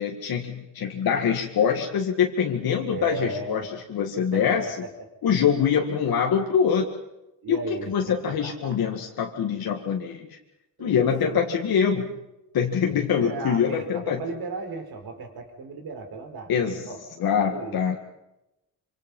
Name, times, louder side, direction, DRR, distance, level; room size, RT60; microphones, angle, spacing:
voice 1, 0.0-4.7 5.2-6.9 7.5-10.4 10.8-12.2 12.5-14.2 16.5-16.9 17.2-18.0, left 7 dB, 70° left, 1 dB, 2.0 m, -24 dB
voice 2, 2.9-3.6 4.3-4.9 7.4-7.9 8.3-8.8 10.8-11.4 12.9-17.0 17.4-17.8, right 4 dB, 75° right, 4 dB, 4.7 m, -36 dB
26.0 x 25.5 x 5.5 m, 0.93 s
cardioid pair, 140°, 37 cm